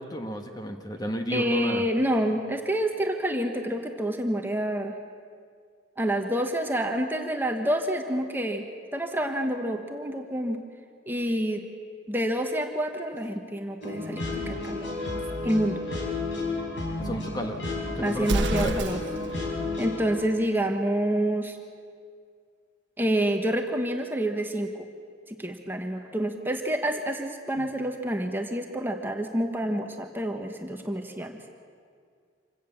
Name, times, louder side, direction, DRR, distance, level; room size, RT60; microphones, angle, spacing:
voice 1, 0.0-1.8 17.0-17.6 17.9-18.8 27.6-27.7, equal, 20° left, 5 dB, 1.4 m, -32 dB
voice 2, 1.3-4.9 6.0-8.7 8.9-10.6 11.1-11.6 12.1-15.8 18.0-19.0 19.8-21.6 23.0-24.7 25.3-31.4, right 1 dB, 10° right, 4 dB, 1.3 m, -28 dB
sound 1, 13.8-20.1, left 2 dB, 70° left, 5.7 m, -32 dB
Explosion, 18.2-19.3, right 2 dB, 75° right, 1.0 m, -28 dB
26.5 x 17.0 x 7.3 m, 2.2 s
head